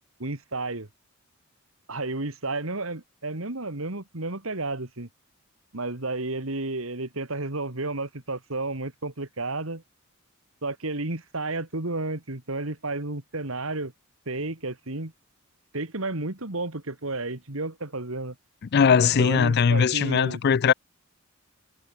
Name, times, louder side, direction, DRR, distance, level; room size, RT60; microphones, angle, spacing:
voice 1, 0.2-0.9 1.9-5.1 5.7-9.8 10.6-13.9 14.3-15.1 15.7-18.4 19.0-20.4, right 2 dB, 75° right, 2.5 m, -32 dB
voice 2, 18.7-20.7, left 6 dB, 50° left, 0.4 m, -20 dB
head